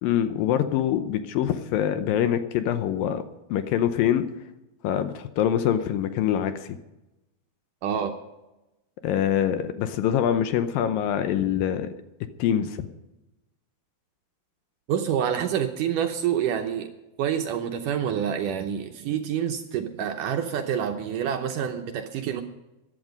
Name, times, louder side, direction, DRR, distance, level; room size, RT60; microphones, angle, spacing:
voice 1, 0.0-3.2 3.5-4.3 4.8-6.8 9.0-11.9 12.4-12.9, left 10 dB, 75° left, 10 dB, 2.4 m, -24 dB
voice 2, 7.8-8.1 14.9-16.9 17.2-22.4, right 9 dB, 75° right, 5 dB, 2.1 m, -27 dB
15.0 x 11.0 x 5.3 m, 0.97 s
omnidirectional pair, 4.4 m